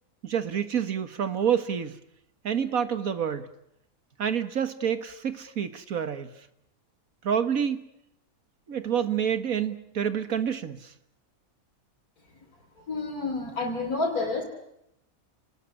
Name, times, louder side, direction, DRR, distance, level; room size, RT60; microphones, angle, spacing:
voice 1, 0.2-2.0 2.4-3.5 4.2-6.3 7.2-7.8 8.7-10.9, right 8 dB, 70° right, 10 dB, 1.9 m, -28 dB
voice 2, 12.9-14.4, left 3 dB, 85° left, -1 dB, 4.1 m, -29 dB
30.0 x 20.0 x 9.9 m, 0.82 s
omnidirectional pair, 1.5 m